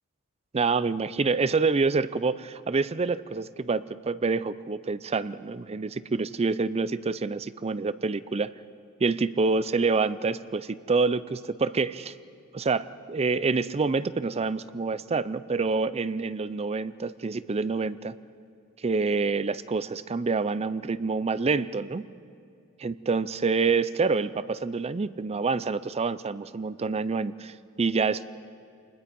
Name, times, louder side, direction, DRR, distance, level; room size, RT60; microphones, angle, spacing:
voice 1, 0.5-8.5 9.0-12.1 12.5-18.1 18.8-22.1 22.8-28.3, right 4 dB, 30° right, 16 dB, 0.5 m, -27 dB
27.0 x 20.5 x 5.3 m, 2.4 s
head